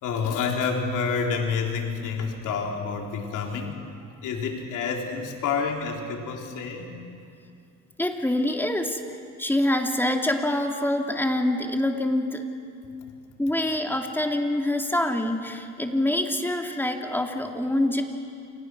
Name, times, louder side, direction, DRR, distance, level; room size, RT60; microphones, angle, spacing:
voice 1, 0.0-3.9 4.2-6.9, left 5 dB, 85° left, 1 dB, 3.5 m, -28 dB
voice 2, 8.0-9.0 9.4-12.5 13.4-18.0, left 1 dB, 5° left, 2 dB, 2.9 m, -25 dB
30.0 x 26.5 x 6.2 m, 2.4 s
cardioid pair, 90°, 30 cm